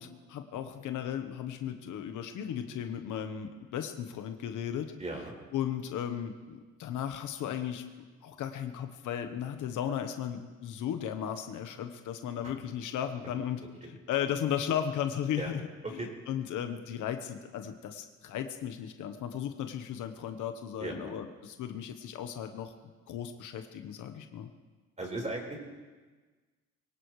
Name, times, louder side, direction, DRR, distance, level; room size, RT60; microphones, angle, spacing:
voice 1, 0.0-4.9 5.5-7.8 8.2-13.6 13.9-22.7 23.1-24.5, left 9 dB, 85° left, 7 dB, 1.1 m, -35 dB
voice 2, 5.0-5.3 15.4-15.5 15.8-16.1 20.8-21.1 25.0-25.6, right 2 dB, 25° right, 0 dB, 4.6 m, -36 dB
23.0 x 18.0 x 3.2 m, 1.4 s
cardioid pair, 90°, 30 cm